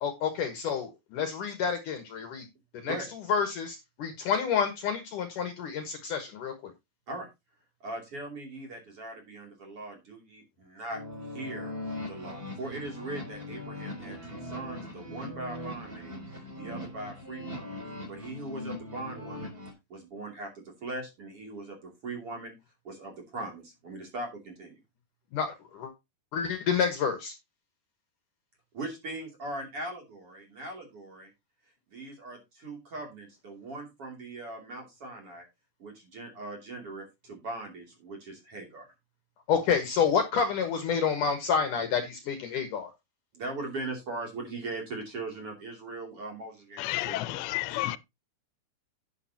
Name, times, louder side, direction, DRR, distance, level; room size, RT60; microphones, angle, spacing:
voice 1, 0.0-2.4 2.8-3.0 3.3-6.7 25.3-25.9 26.3-27.3 39.5-42.9, left 6 dB, 65° left, 2.3 m, -29 dB
voice 2, 7.8-11.0 11.3-11.7 12.1-16.2 16.6-17.8 18.1-19.5 19.9-22.5 22.8-24.8 28.7-31.3 31.9-35.5 35.8-38.9 43.3-47.4 47.7-47.8, right 2 dB, 35° right, 3.2 m, -40 dB
sound 1, 10.9-19.7, left 1 dB, 15° right, 3.6 m, -40 dB
voice 3, 46.8-48.0, left 16 dB, 85° left, 2.8 m, -31 dB
10.5 x 9.5 x 2.8 m
omnidirectional pair, 5.0 m